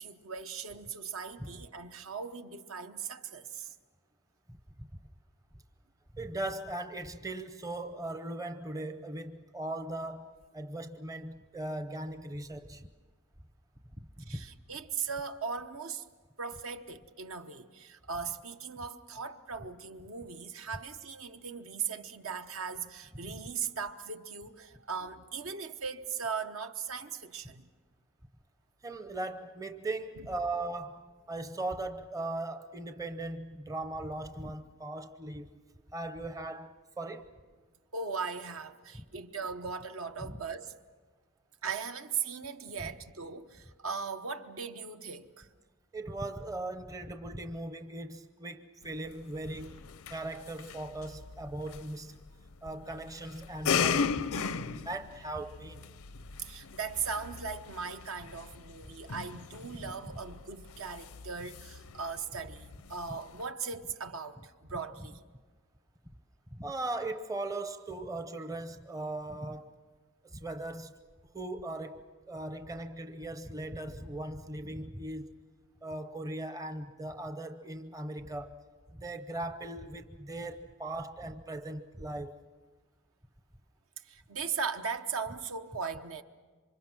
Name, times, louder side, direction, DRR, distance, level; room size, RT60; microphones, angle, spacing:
voice 1, 0.0-3.7 14.3-16.0 16.4-27.7 37.9-40.7 41.6-45.5 56.1-65.2 84.0-86.2, right 5 dB, 70° right, 1.1 m, -38 dB
voice 2, 4.5-5.0 6.1-12.9 14.2-14.4 23.3-23.4 28.8-35.6 35.9-37.3 38.9-39.0 40.2-40.4 42.8-42.9 45.9-49.8 50.1-52.2 52.6-55.9 59.7-59.9 66.5-69.8 70.2-71.0 71.3-75.4 75.8-78.6 78.9-82.4, right 2 dB, 15° right, 0.7 m, -39 dB
sound 1, 48.8-63.5, left 6 dB, 75° left, 0.6 m, -38 dB
28.0 x 25.0 x 6.2 m
head